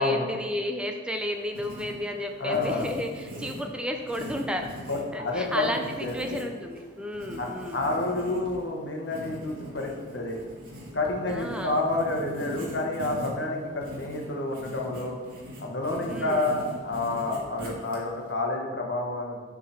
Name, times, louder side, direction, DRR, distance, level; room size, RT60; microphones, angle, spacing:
voice 1, 0.0-4.9 5.1-7.8 11.3-11.8 16.1-16.5, left 1 dB, 5° right, 4 dB, 0.4 m, -32 dB
Writing, 1.1-18.3, equal, 50° right, 2.0 m, -41 dB
voice 2, 2.4-2.9 4.9-5.7 6.0-6.1 7.4-10.4 10.9-15.2 15.6-19.4, left 2 dB, 70° left, 0 dB, 1.2 m, -29 dB
8.3 x 3.8 x 5.7 m, 1.5 s
head